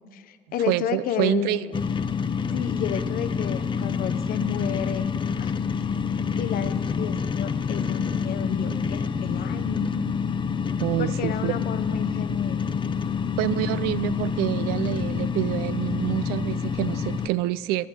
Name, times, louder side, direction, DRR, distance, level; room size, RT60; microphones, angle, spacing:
voice 1, 0.1-1.6 2.5-5.1 5.4-5.5 6.4-10.0 11.0-12.7, left 9 dB, 55° left, 0.9 m, -31 dB
voice 2, 0.7-1.7 10.8-11.6 13.4-17.9, right 16 dB, 70° right, 0.4 m, -27 dB
sound 1, 1.7-17.3, left 6 dB, 30° left, 0.7 m, -27 dB
27.5 x 9.4 x 3.8 m
hypercardioid pair, 70°, 17 cm